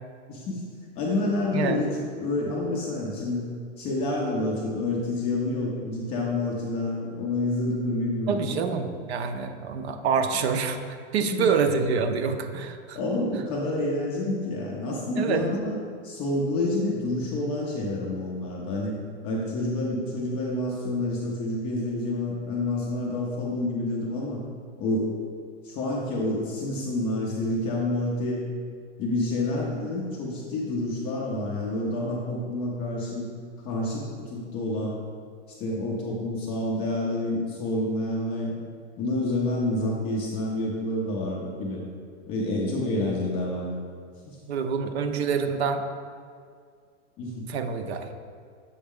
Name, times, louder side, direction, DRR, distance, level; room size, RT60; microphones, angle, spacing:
voice 1, 0.3-0.6 1.0-3.5 3.8-8.6 11.3-11.5 13.0-15.8 16.0-19.0 19.2-24.4 24.8-25.1 25.6-28.4 29.0-33.3 33.6-35.0 35.6-38.6 39.0-41.8 42.3-43.8 44.3-44.4 47.2-47.5, left 2 dB, 15° left, -3 dB, 0.4 m, -28 dB
voice 2, 8.3-13.0 15.2-15.4 44.5-45.8 47.5-48.1, right 5 dB, 60° right, 7 dB, 0.7 m, -26 dB
7.0 x 4.2 x 3.6 m, 2.1 s
hypercardioid pair, 145°, 37 cm